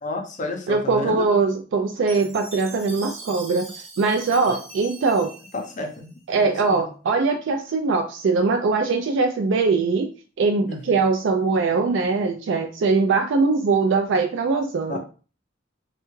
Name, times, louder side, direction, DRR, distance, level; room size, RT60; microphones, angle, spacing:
voice 1, 0.0-1.3 4.5-4.6 5.5-6.9 10.6-11.0 14.9-15.0, left 2 dB, 40° left, 3 dB, 0.6 m, -32 dB
voice 2, 0.7-3.7 4.0-5.3 6.3-10.1 10.4-15.0, right 4 dB, 65° right, 5 dB, 0.3 m, -21 dB
Chime, 2.1-6.4, right 2 dB, 35° right, 0.8 m, -41 dB
3.3 x 2.3 x 3.1 m, 0.37 s
head